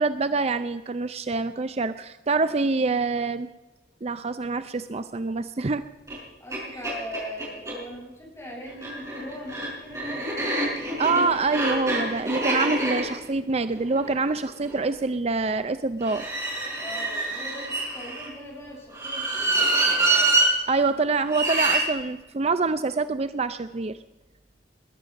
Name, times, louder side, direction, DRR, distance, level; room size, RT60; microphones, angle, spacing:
voice 1, 0.0-3.5 4.0-5.8 11.0-16.2 20.7-24.0, right 3 dB, 35° right, 12 dB, 0.5 m, -26 dB
sound 1, 6.1-6.2 6.5-6.6 6.8-7.8 8.7-14.8 16.0-18.3 18.9-20.5 21.3-21.8, right 2 dB, 15° right, 5.4 m, -26 dB
voice 2, 6.4-10.4 16.7-20.1, equal, 15° left, -3 dB, 6.9 m, -40 dB
20.5 x 11.0 x 6.4 m, 1.1 s
head